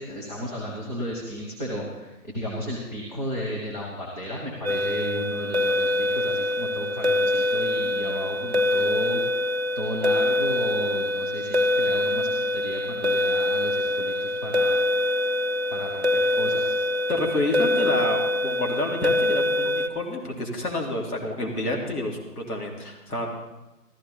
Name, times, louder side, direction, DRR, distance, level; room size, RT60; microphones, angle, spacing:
voice 1, 0.0-9.4 9.8-14.8 15.7-16.8, equal, 25° left, -4 dB, 1.7 m, -34 dB
sound 1, 4.6-19.9, left 1 dB, 45° right, 0.5 m, -24 dB
voice 2, 17.1-23.3, left 2 dB, 70° left, 0 dB, 2.9 m, -29 dB
14.0 x 13.5 x 4.1 m, 1.1 s
figure-of-eight pair, 160°, 48 cm